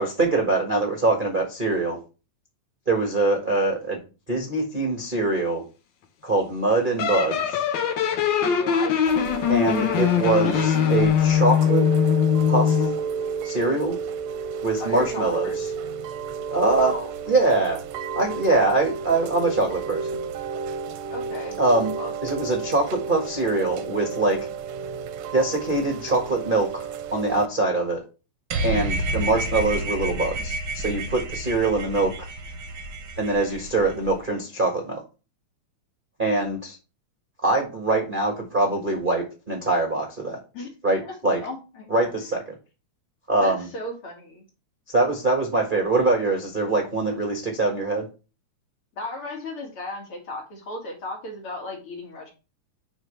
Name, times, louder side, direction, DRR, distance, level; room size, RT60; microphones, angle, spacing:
voice 1, 0.0-2.0 2.9-4.0 4.3-5.6 6.2-7.6 9.5-10.6 10.9-11.8 12.5-12.8 13.4-13.9 14.6-15.5 16.5-16.9 17.3-17.8 18.1-20.1 21.6-21.9 22.2-24.4 25.3-28.0 28.6-32.1 33.2-35.0 36.2-36.8 37.4-40.4 40.8-41.4 41.9-42.4 43.3-43.7 44.9-48.0, right 2 dB, 25° right, 1 dB, 1.1 m, -23 dB
sound 1, 7.0-13.0, left 8 dB, 90° left, 1.0 m, -21 dB
voice 2, 8.4-9.1 10.4-10.9 14.8-15.7 16.8-17.1 21.1-21.6 22.0-22.1 40.5-40.7 41.0-41.1 41.4-42.3 43.4-44.4 49.0-52.3, left 1 dB, 50° left, 0 dB, 2.8 m, -35 dB
Chime / Rain, 9.1-27.5, right 6 dB, 75° right, 1.7 m, -32 dB
sound 2, 28.5-34.1, right 2 dB, 60° right, 1.5 m, -30 dB
11.0 x 4.4 x 3.3 m, 0.31 s
omnidirectional pair, 3.3 m